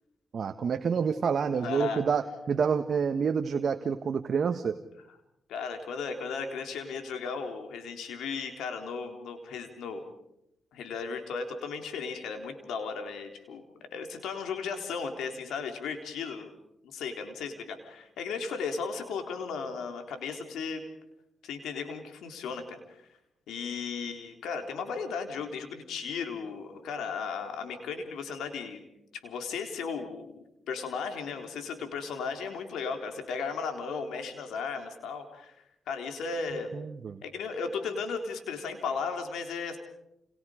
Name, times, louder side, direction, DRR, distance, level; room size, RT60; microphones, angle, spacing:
voice 1, 0.3-4.7 36.7-37.2, right 6 dB, 60° right, 7 dB, 1.4 m, -28 dB
voice 2, 1.6-2.0 5.5-10.0 10.7-13.6 13.9-16.5 16.8-20.8 21.4-23.0 23.5-28.8 29.2-35.5 35.9-36.8 37.2-39.8, left 5 dB, 90° left, 5 dB, 3.6 m, -35 dB
29.5 x 29.5 x 5.1 m, 0.85 s
cardioid pair, 70°, 0 cm